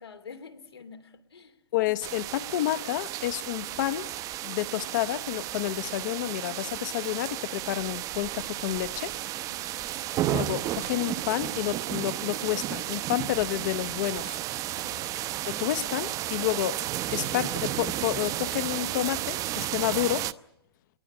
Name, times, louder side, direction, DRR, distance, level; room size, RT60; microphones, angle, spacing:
voice 1, 0.0-1.6 9.5-10.2 14.7-15.1, left 5 dB, 90° left, 3.3 m, -48 dB
voice 2, 1.7-4.1 4.4-9.1 10.3-14.4 15.5-16.8 17.1-20.3, left 15 dB, 50° left, 1.0 m, -30 dB
sound 1, 2.0-20.3, right 14 dB, 25° right, 0.8 m, -33 dB
22.0 x 20.5 x 8.9 m
hypercardioid pair, 130°, 13 cm